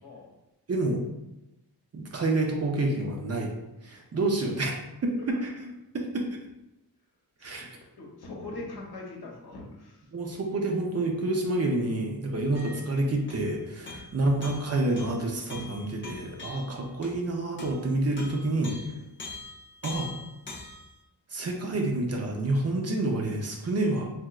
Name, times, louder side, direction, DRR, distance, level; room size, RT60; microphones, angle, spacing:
voice 1, 0.0-0.3 5.3-5.4 7.4-7.7 8.0-10.0 12.3-12.5 13.8-14.0 16.4-16.8 18.9-19.1, left 3 dB, 75° left, -1 dB, 0.8 m, -43 dB
voice 2, 0.7-1.0 1.9-3.5 3.8-4.7 5.0-5.5 5.9-6.3 7.4-7.7 10.1-18.8 19.8-20.1 21.3-24.1, right 2 dB, 40° right, 1 dB, 0.5 m, -28 dB
sound 1, 12.5-12.9 13.3-13.6 13.9-17.2 17.6-17.9 18.2-20.9, left 3 dB, 30° left, 0.6 m, -43 dB
3.4 x 2.9 x 2.3 m, 0.94 s
wide cardioid pair, 135°, 39 cm